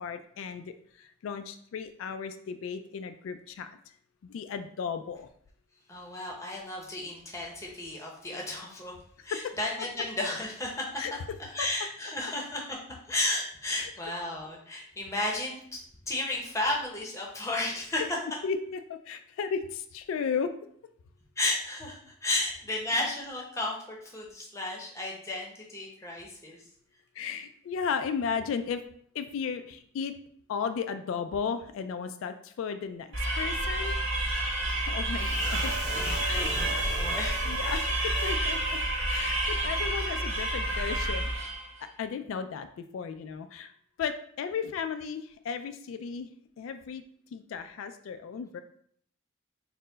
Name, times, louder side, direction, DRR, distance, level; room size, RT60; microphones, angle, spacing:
voice 1, 0.0-3.7 4.2-5.3 9.3-9.5 11.0-11.1 11.6-11.7 13.7-13.9 17.9-18.0 18.4-20.5 22.3-22.4 22.7-22.8 27.2-28.8 29.1-30.1 30.5-33.9 34.9-35.8 36.2-36.5 37.5-38.6 39.0-41.5 42.0-43.7 44.0-46.3 46.6-47.0 47.3-48.6, left 6 dB, 90° left, 9 dB, 0.3 m, -35 dB
voice 2, 5.9-8.9 9.2-11.0 11.4-12.8 13.1-15.6 16.1-18.0 21.4-26.6 35.9-36.0 36.3-37.6, left 2 dB, 15° left, -2 dB, 0.7 m, -33 dB
sound 1, 33.1-41.7, right 1 dB, 85° right, 1.4 m, -29 dB
sound 2, 35.2-38.4 38.6-38.8 39.2-39.3, right 1 dB, 35° right, 1.5 m, -38 dB
4.3 x 2.1 x 3.9 m, 0.63 s
head